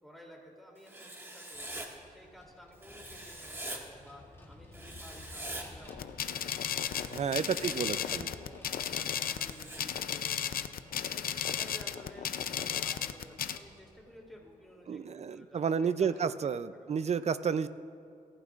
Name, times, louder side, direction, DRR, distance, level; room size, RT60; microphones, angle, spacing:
voice 1, 0.0-6.9 7.2-16.4 16.7-17.0, equal, ahead, -2 dB, 3.0 m, -54 dB
Writing, 0.9-1.9 2.8-3.8 4.7-5.6 6.7-7.8 8.8-9.8, right 1 dB, 15° right, 1.8 m, -44 dB
Vehicle, 1.5-14.8, left 2 dB, 15° left, 2.6 m, -56 dB
sound 1, 5.9-13.6, left 9 dB, 90° left, 0.5 m, -34 dB
voice 2, 7.1-8.3 14.9-17.7, right 6 dB, 50° right, 13 dB, 0.5 m, -31 dB
26.5 x 15.0 x 2.5 m, 2.4 s
wide cardioid pair, 105°, 15 cm